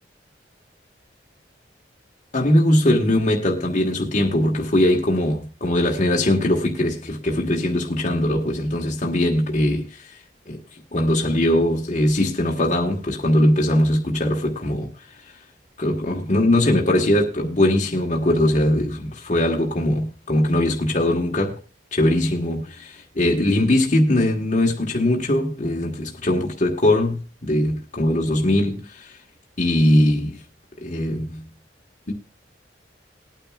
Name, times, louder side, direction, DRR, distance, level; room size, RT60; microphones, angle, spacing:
voice 1, 2.3-10.2 10.5-10.6 10.9-14.9 15.8-21.6 21.9-29.2 29.6-30.4 30.8-31.4, left 1 dB, 45° left, 1.4 m, -21 dB
20.5 x 9.1 x 2.4 m
head